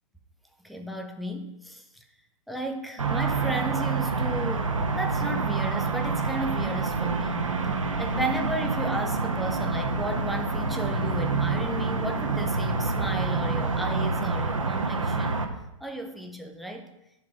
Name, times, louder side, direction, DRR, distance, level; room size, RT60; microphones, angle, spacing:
voice 1, 0.6-2.0 2.5-7.5 8.0-15.5 15.8-16.9, right 1 dB, ahead, 5 dB, 0.6 m, -34 dB
sound 1, 3.0-15.5, right 4 dB, 70° right, 1.1 m, -27 dB
9.4 x 4.8 x 5.3 m, 0.86 s
figure-of-eight pair, 120°, 18 cm